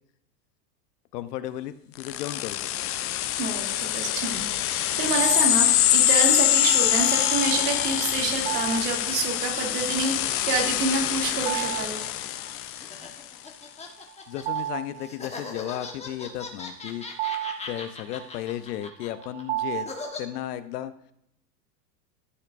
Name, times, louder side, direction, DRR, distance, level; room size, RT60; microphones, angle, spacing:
voice 1, 1.1-2.9 14.3-17.0 17.7-19.9 20.2-20.9, left 12 dB, 70° left, 12 dB, 0.9 m, -34 dB
sound 1, 2.0-13.1, left 13 dB, 30° left, 0.5 m, -24 dB
voice 2, 3.3-12.0, right 4 dB, 70° right, 1 dB, 2.6 m, -28 dB
sound 2, 5.1-5.8 8.5-9.1 11.4-12.1 12.5-12.6 14.0-15.5 16.5-20.4, right 13 dB, 40° right, 0.5 m, -33 dB
sound 3, 9.4-14.6 15.0-20.2, left 4 dB, 15° left, 1.3 m, -41 dB
14.0 x 6.6 x 2.6 m, 0.75 s
hypercardioid pair, 110°, 50 cm